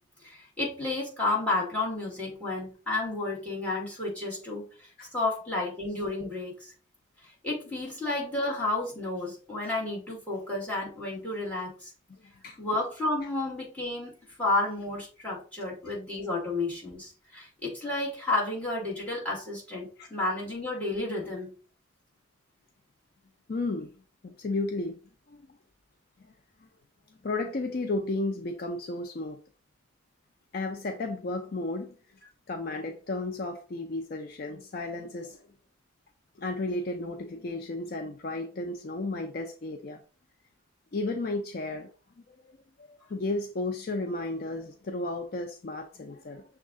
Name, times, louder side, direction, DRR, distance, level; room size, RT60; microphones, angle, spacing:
voice 1, 0.2-6.7 7.2-11.9 12.6-14.1 14.4-21.5, left 2 dB, 5° left, 1.7 m, -31 dB
voice 2, 23.5-23.9 24.2-25.0 25.3-25.4 27.2-29.4 30.5-31.9 32.5-35.5 36.4-40.0 40.9-41.9 42.4-46.4, left 2 dB, 45° left, 0.4 m, -33 dB
6.2 x 2.4 x 3.6 m
head